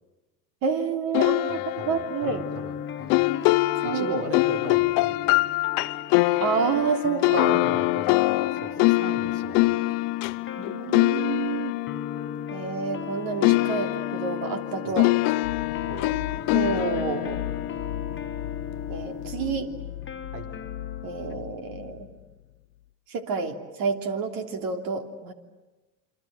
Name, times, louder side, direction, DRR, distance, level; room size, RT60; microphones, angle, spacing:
voice 1, 0.6-2.4 3.8-4.2 6.4-7.5 10.6-11.7 12.5-15.1 16.5-17.4 18.9-19.7 21.0-22.1 23.1-25.3, right 5 dB, 50° right, 5 dB, 3.3 m, -29 dB
sound 1, 1.1-13.1 13.4-18.6, left 22 dB, 60° left, 0.8 m, -25 dB
voice 2, 1.5-3.3 3.8-5.4 7.3-9.7 10.2-10.3 14.8-15.0 15.9-16.1 20.3-20.5, right 3 dB, 70° right, 4 dB, 4.6 m, -38 dB
sound 2, 2.3-21.4, left 7 dB, 25° left, 1.3 m, -38 dB
sound 3, 15.4-22.6, left 14 dB, 85° left, 1.0 m, -37 dB
28.0 x 25.0 x 7.8 m, 1.1 s
hypercardioid pair, 95°, 44 cm